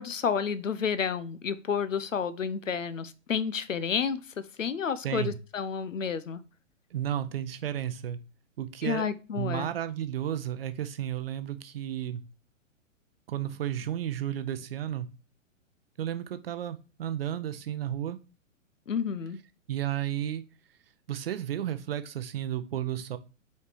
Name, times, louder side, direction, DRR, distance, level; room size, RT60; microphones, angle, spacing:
voice 1, 0.0-4.2 4.6-6.4 8.8-9.7 18.9-19.4, left 6 dB, 70° left, 14 dB, 0.8 m, -30 dB
voice 2, 5.0-5.4 6.9-8.2 8.6-9.1 9.3-12.2 13.3-15.1 16.0-18.2 19.7-20.4 21.1-23.2, right 11 dB, 45° right, 11 dB, 0.7 m, -32 dB
5.7 x 4.5 x 4.8 m, 0.33 s
figure-of-eight pair, 115°, 39 cm